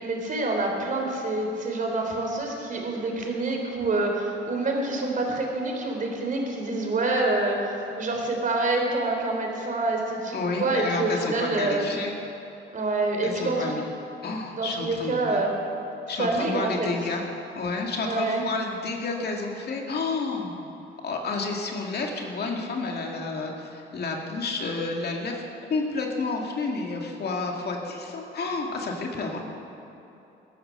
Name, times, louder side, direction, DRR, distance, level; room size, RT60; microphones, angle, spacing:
voice 1, 0.0-11.8 12.7-13.8 14.5-15.5 16.2-16.9 18.0-18.4, right 2 dB, 40° right, 1 dB, 3.4 m, -27 dB
voice 2, 10.3-12.1 13.2-13.8 14.2-15.4 16.1-17.2 17.5-20.7 21.0-25.4 25.7-29.4, left 3 dB, 55° left, 1 dB, 2.2 m, -30 dB
15.0 x 12.5 x 6.6 m, 2.9 s
cardioid pair, 90°, 20 cm